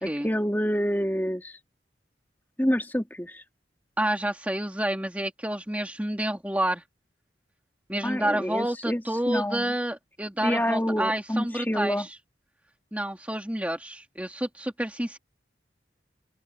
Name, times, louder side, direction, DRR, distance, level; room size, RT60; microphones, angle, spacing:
voice 1, 0.0-1.6 2.6-3.4 8.0-9.7 10.4-12.1, equal, 10° left, 2.6 m, -27 dB
voice 2, 4.0-6.8 7.9-12.2 12.9-15.2, right 1 dB, 10° right, 2.2 m, -29 dB
open air
head